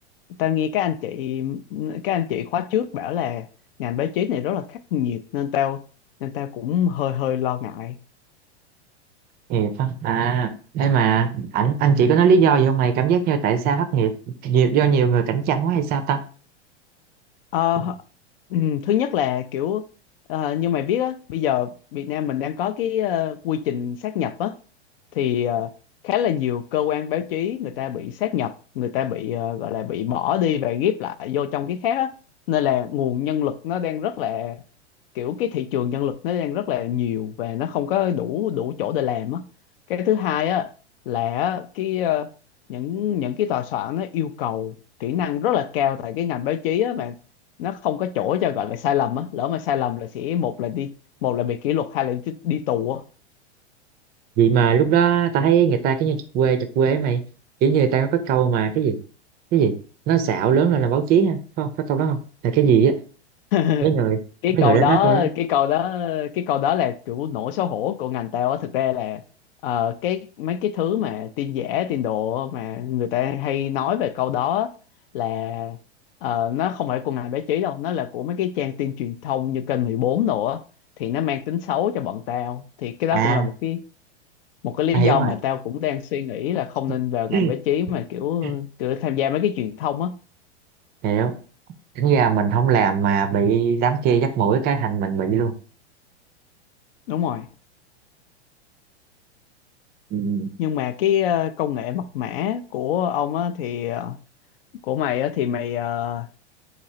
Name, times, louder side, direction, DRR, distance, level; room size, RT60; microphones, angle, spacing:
voice 1, 0.4-3.5 3.8-5.8 6.2-8.0 17.5-18.0 18.5-19.8 20.3-24.6 25.1-25.7 26.0-32.1 32.5-34.6 35.2-39.4 39.9-40.7 41.1-42.3 42.7-44.7 45.0-47.2 47.6-50.9 51.2-53.0 63.5-63.9 64.4-69.2 69.6-74.7 75.1-75.8 76.2-80.6 81.0-83.8 84.6-90.1 97.1-97.5 100.6-104.2 104.8-106.3, left 10 dB, 55° left, 0.4 m, -25 dB
voice 2, 9.5-16.2 54.4-57.2 57.6-59.0 59.5-59.7 60.1-62.2 62.4-62.9 63.8-64.2 64.5-65.3 83.1-83.5 84.9-85.3 87.3-87.5 88.4-88.5 91.0-91.3 92.0-95.5 100.1-100.5, right 7 dB, 30° right, 0.5 m, -20 dB
4.0 x 3.0 x 2.7 m
hypercardioid pair, 105°, 34 cm